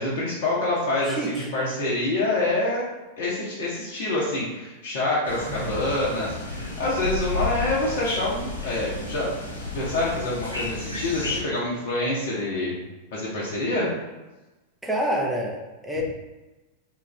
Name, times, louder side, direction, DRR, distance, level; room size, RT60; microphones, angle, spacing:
voice 1, 0.0-2.8 3.2-9.4 9.7-12.8 13.1-13.9, left 2 dB, 55° left, -6 dB, 0.8 m, -26 dB
sound 1, 5.2-11.4, left 3 dB, 90° right, 1.1 m, -32 dB
voice 2, 5.4-5.8 14.8-16.0, right 1 dB, 5° right, -1 dB, 0.6 m, -28 dB
3.2 x 2.5 x 3.2 m, 1.1 s
figure-of-eight pair, 90°, 0 cm